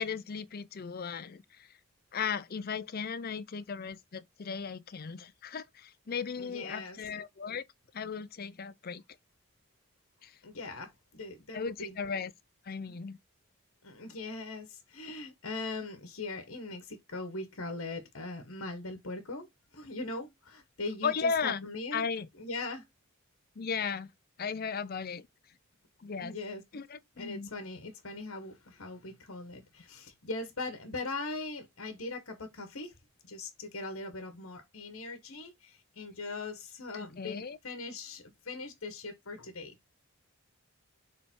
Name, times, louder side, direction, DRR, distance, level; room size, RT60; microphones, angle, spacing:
voice 1, 0.0-1.4 2.1-7.6 7.9-9.0 10.2-10.3 11.5-12.3 12.7-13.2 21.0-21.7 21.9-22.3 23.6-24.1 24.4-25.3 26.0-26.4 26.7-27.5 36.9-37.6, left 6 dB, 45° left, 0.5 m, -36 dB
voice 2, 6.4-7.0 10.4-12.0 12.9-13.0 13.8-19.5 19.7-22.0 22.4-22.8 26.2-26.6 27.2-32.9 33.2-39.8, left 3 dB, 70° left, 1.3 m, -40 dB
6.7 x 3.4 x 4.5 m
head